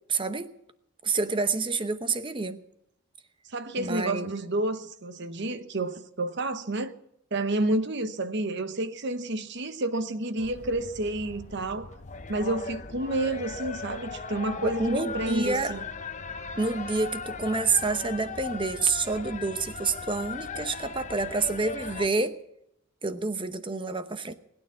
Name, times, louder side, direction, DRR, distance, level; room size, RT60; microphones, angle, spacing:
voice 1, 0.1-0.5 1.0-2.6 3.8-4.4 14.6-15.7 16.6-22.4 23.0-24.3, right 3 dB, 25° right, 0.9 m, -28 dB
voice 2, 3.5-6.9 7.3-11.9 12.3-15.8, right 2 dB, 55° right, 1.1 m, -30 dB
sound 1, 10.4-22.1, left 4 dB, 35° left, 0.8 m, -38 dB
20.5 x 9.3 x 7.2 m
head